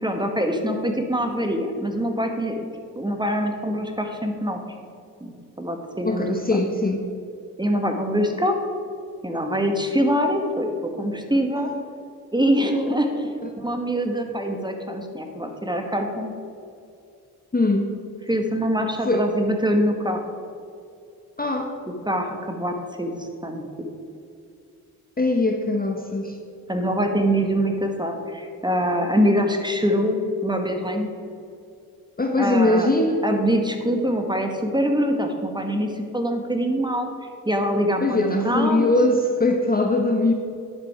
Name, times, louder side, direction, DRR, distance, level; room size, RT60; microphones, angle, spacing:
voice 1, 0.0-2.6 3.0-4.6 5.2-6.6 7.6-8.6 9.2-11.7 12.3-13.3 13.6-16.3 18.3-20.2 22.1-23.7 26.7-31.1 32.4-32.9 33.2-37.1 37.4-38.8, equal, 10° right, 4 dB, 1.4 m, -24 dB
voice 2, 6.0-7.0 12.7-12.8 13.4-13.5 17.5-17.9 19.0-19.3 21.4-21.7 25.2-26.4 32.2-33.2 38.0-40.3, left 2 dB, 20° left, 3 dB, 0.9 m, -21 dB
10.5 x 5.0 x 4.8 m, 2.5 s
supercardioid pair, 45°, 40 cm